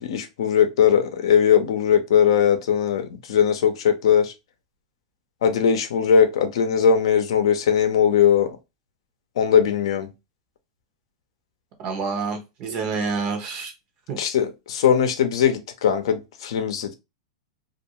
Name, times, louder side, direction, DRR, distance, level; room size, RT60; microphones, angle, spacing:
voice 1, 0.0-4.3 5.4-8.6 9.4-10.1 14.2-16.9, left 8 dB, 70° left, 0.6 m, -20 dB
voice 2, 11.8-13.7 14.1-14.2, right 4 dB, 40° right, 0.8 m, -28 dB
2.4 x 2.2 x 2.9 m
hypercardioid pair, 130°, 3 cm